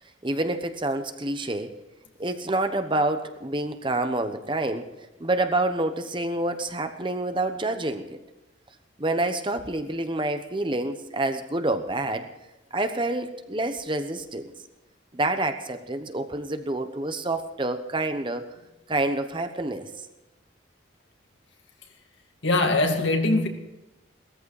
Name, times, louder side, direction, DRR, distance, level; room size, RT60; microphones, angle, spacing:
voice 1, 0.2-1.8 2.2-4.9 5.2-8.2 9.0-12.3 12.7-14.5 15.1-18.5 18.9-19.9, right 2 dB, 25° right, 1.0 m, -27 dB
voice 2, 22.4-23.5, left 2 dB, 75° left, 2.1 m, -22 dB
18.0 x 14.0 x 4.9 m
head